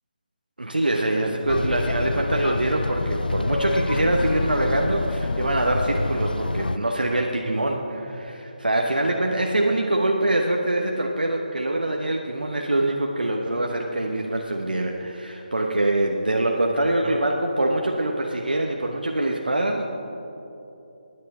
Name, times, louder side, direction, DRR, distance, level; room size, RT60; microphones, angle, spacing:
voice 1, 0.6-19.9, right 1 dB, 80° right, 1 dB, 1.0 m, -24 dB
sound 1, 1.5-6.8, left 2 dB, 80° left, 0.4 m, -26 dB
18.0 x 10.0 x 4.3 m, 2.9 s
figure-of-eight pair, 150°, 5 cm